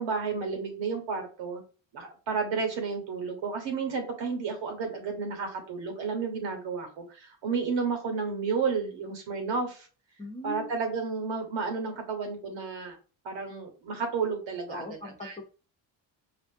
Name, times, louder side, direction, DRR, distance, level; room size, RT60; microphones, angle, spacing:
voice 1, 0.0-1.6 1.9-9.9 10.4-13.0 13.2-15.4, right 5 dB, 65° right, 4 dB, 1.4 m, -32 dB
voice 2, 10.2-10.7 14.7-15.4, left 3 dB, 15° left, 1 dB, 1.0 m, -40 dB
4.2 x 2.5 x 2.7 m, 0.36 s
supercardioid pair, 75°, 48 cm